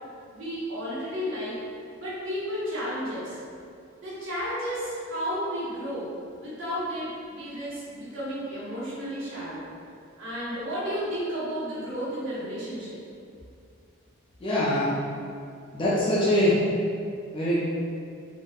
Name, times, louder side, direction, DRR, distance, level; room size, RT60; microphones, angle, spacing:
voice 1, 0.3-1.6 2.0-3.4 4.0-6.1 6.4-9.6 10.2-13.0, equal, 65° right, -9 dB, 0.8 m, -32 dB
voice 2, 14.4-14.9 15.7-16.6 17.3-17.6, left 1 dB, 25° left, -8 dB, 0.3 m, -23 dB
2.8 x 2.1 x 2.2 m, 2.4 s
head